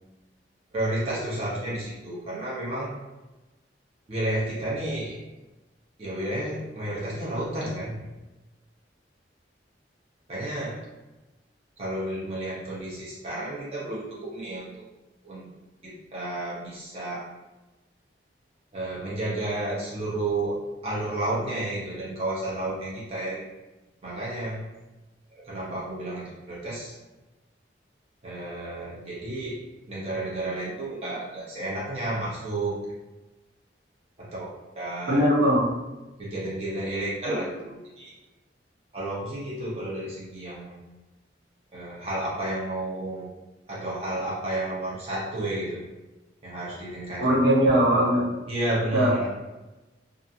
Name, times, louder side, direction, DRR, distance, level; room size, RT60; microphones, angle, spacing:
voice 1, 0.7-2.9 4.1-5.2 6.0-8.0 10.3-10.8 11.8-14.8 15.2-15.5 15.8-17.3 18.7-20.6 20.8-23.4 24.0-24.6 25.3-27.0 28.2-32.9 34.2-34.4 34.7-35.2 36.2-38.2 38.9-40.8 41.7-43.3 43.7-45.9 46.4-47.4 48.5-49.3, right 1 dB, 35° right, -7 dB, 0.6 m, -31 dB
voice 2, 35.1-35.7 47.2-48.3 48.9-49.1, equal, 75° right, -5 dB, 0.8 m, -20 dB
2.4 x 2.4 x 2.6 m, 1.1 s
head